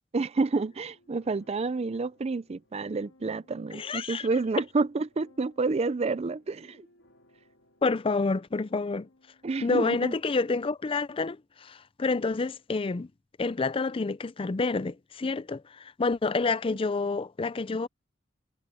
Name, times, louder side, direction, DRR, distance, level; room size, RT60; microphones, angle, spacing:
voice 1, 0.1-6.9 9.4-10.1, right 3 dB, 30° right, 0.4 m, -29 dB
sound 1, 0.6-11.3, left 1 dB, 80° left, 3.0 m, -63 dB
voice 2, 3.7-4.3 7.8-9.1 9.6-13.1 13.4-17.9, left 3 dB, 30° left, 0.4 m, -28 dB
head